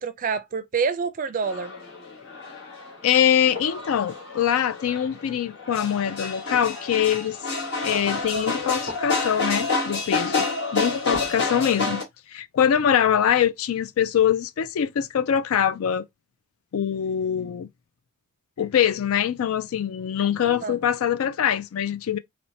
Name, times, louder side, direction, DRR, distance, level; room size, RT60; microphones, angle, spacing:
voice 1, 0.0-1.7 11.8-12.0 20.6-20.8, right 5 dB, 40° right, 0.4 m, -27 dB
sound 1, 1.4-12.0, left 3 dB, 55° left, 1.8 m, -29 dB
voice 2, 3.0-7.4 7.8-10.4 10.7-12.0 12.3-16.0 16.7-17.7 18.6-22.2, left 9 dB, 80° left, 0.4 m, -23 dB
4.2 x 2.1 x 2.7 m
head